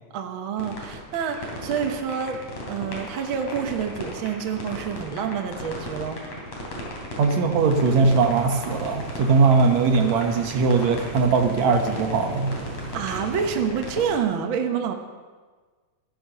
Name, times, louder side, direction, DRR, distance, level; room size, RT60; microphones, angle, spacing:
voice 1, 0.1-6.2 12.9-14.9, right 7 dB, 55° right, 4 dB, 1.6 m, -28 dB
sound 1, 0.6-14.2, left 2 dB, 60° left, 4.2 m, -36 dB
voice 2, 7.2-12.5, right 4 dB, 70° right, 5 dB, 2.4 m, -20 dB
sound 2, 7.5-14.0, right 1 dB, 35° right, 5.4 m, -40 dB
14.5 x 11.0 x 6.6 m, 1.4 s
omnidirectional pair, 3.3 m